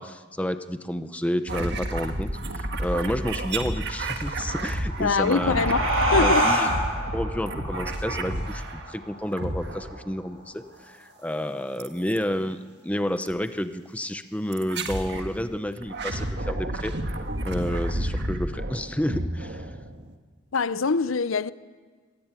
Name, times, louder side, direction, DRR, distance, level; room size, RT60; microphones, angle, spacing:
voice 1, 0.0-5.7 6.2-6.7 7.1-16.9 17.4-19.7, equal, 5° left, 0.8 m, -30 dB
sound 1, 1.5-8.9 9.3-10.1 11.8-12.2 13.2-13.4 14.5-15.3 15.8-20.1, right 1 dB, 55° right, 1.8 m, -31 dB
sound 2, 4.8-9.9, equal, 85° right, 6.7 m, -27 dB
voice 2, 5.0-6.5 20.5-21.5, left 4 dB, 85° left, 0.7 m, -24 dB
25.5 x 20.5 x 9.0 m
head